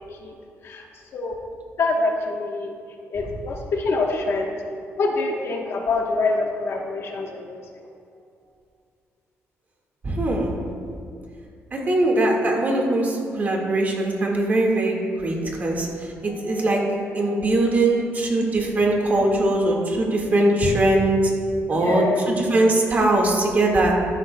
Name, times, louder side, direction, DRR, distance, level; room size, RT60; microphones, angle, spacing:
voice 1, 0.6-1.4 1.8-2.8 3.1-4.6 5.0-7.8 17.0-17.3 21.7-22.3, left 3 dB, 55° left, 1 dB, 1.1 m, -26 dB
voice 2, 10.0-10.6 11.7-16.8 17.1-21.2 21.7-23.9, right 2 dB, 35° right, -1 dB, 1.7 m, -21 dB
13.0 x 11.0 x 2.2 m, 2.3 s
cardioid pair, 130°, 5 cm